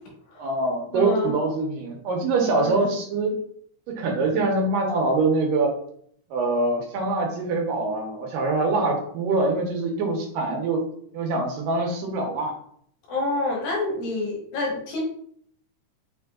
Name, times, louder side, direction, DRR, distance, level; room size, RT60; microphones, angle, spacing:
voice 1, 0.4-3.4 3.9-5.7 6.3-10.8 11.1-12.5, right 3 dB, 90° right, 1 dB, 2.6 m, -24 dB
voice 2, 0.9-1.3 2.6-2.9 13.1-15.0, left 2 dB, 70° left, -2 dB, 2.4 m, -27 dB
5.5 x 3.6 x 2.3 m, 0.64 s
omnidirectional pair, 3.7 m